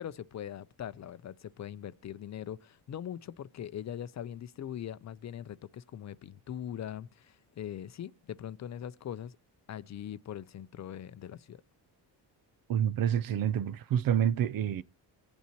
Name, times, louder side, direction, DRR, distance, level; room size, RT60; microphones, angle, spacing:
voice 1, 0.0-9.4 9.7-11.6, left 10 dB, 40° left, 0.5 m, -41 dB
voice 2, 12.7-14.8, right 9 dB, 50° right, 0.5 m, -28 dB
23.0 x 8.4 x 3.0 m
cardioid pair, 140°, 45 cm